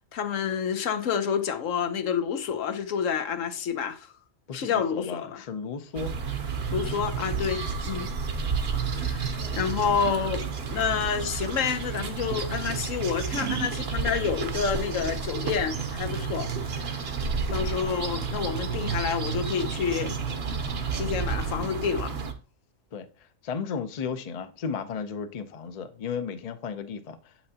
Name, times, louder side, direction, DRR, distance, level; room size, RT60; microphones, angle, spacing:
voice 1, 0.1-4.1 4.5-5.4 6.7-8.1 8.8-17.0 17.5-20.2 20.9-22.1, left 7 dB, 85° left, 1.2 m, -29 dB
voice 2, 4.5-6.1 6.8-7.0 22.9-23.1 23.4-27.3, left 6 dB, 45° left, 0.5 m, -34 dB
sound 1, 5.9-22.3, right 5 dB, 55° right, 1.0 m, -31 dB
Scissors, 5.9-12.1 12.6-13.8, right 7 dB, 70° right, 1.2 m, -41 dB
7.7 x 5.8 x 2.7 m
omnidirectional pair, 1.3 m